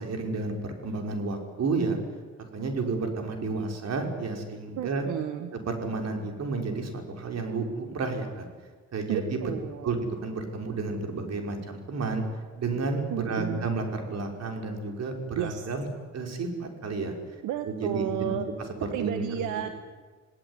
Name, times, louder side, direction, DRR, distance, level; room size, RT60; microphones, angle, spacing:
voice 1, 0.0-2.0 2.5-5.0 5.5-8.5 8.9-9.5 9.8-12.2 12.6-15.9 16.1-17.1 17.7-18.0 18.3-18.4 19.0-19.7, right 3 dB, 60° right, 4 dB, 5.6 m, -31 dB
voice 2, 4.8-5.5 9.1-9.9 13.1-13.7 15.4-15.6 17.4-18.5 18.9-19.7, right 10 dB, 90° right, 8 dB, 1.6 m, -32 dB
28.0 x 18.0 x 9.8 m, 1.5 s
cardioid pair, 90°, 30 cm